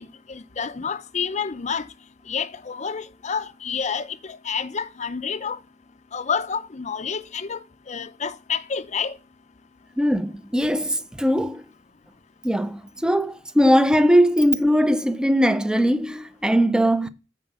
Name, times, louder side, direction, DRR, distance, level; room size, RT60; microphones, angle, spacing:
voice 1, 0.0-1.9 2.3-5.6 6.1-7.6 7.9-9.2, left 6 dB, 40° left, 0.6 m, -29 dB
voice 2, 10.0-11.6 12.4-17.1, equal, 5° right, 0.5 m, -20 dB
7.6 x 4.8 x 6.8 m
head